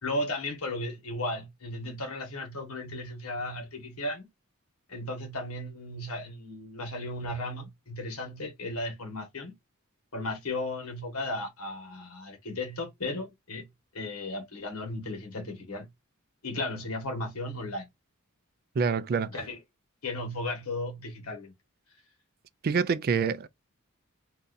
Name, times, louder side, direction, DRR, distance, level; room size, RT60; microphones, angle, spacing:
voice 1, 0.0-4.3 4.9-9.5 10.1-13.7 13.9-15.9 16.4-17.9 19.3-19.6 20.0-21.5, left 1 dB, 85° left, 1.2 m, -35 dB
voice 2, 18.8-19.3 22.6-23.5, right 5 dB, 45° right, 0.3 m, -26 dB
2.6 x 2.4 x 3.8 m
head